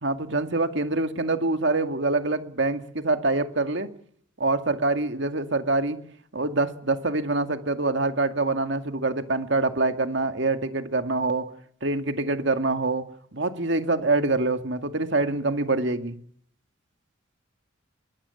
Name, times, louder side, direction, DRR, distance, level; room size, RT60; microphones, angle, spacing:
voice 1, 0.0-3.9 4.4-6.0 6.3-11.5 11.8-13.0 13.3-16.2, right 2 dB, 60° right, 8 dB, 2.1 m, -25 dB
22.0 x 22.0 x 7.1 m, 0.62 s
head